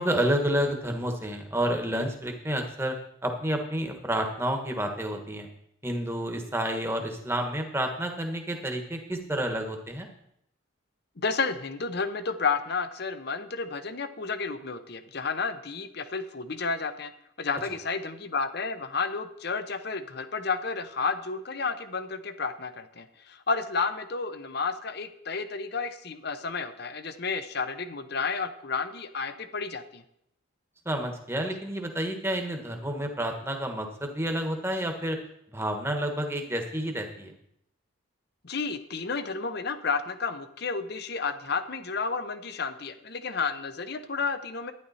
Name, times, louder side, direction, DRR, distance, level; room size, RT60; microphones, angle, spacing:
voice 1, 0.0-3.0 3.2-5.5 5.8-10.1 30.8-35.2 35.5-37.3, right 1 dB, 10° right, 4 dB, 1.2 m, -29 dB
voice 2, 11.2-17.1 17.4-30.0 38.4-44.7, left 4 dB, 50° left, 10 dB, 0.8 m, -31 dB
12.0 x 10.0 x 4.2 m, 0.76 s
head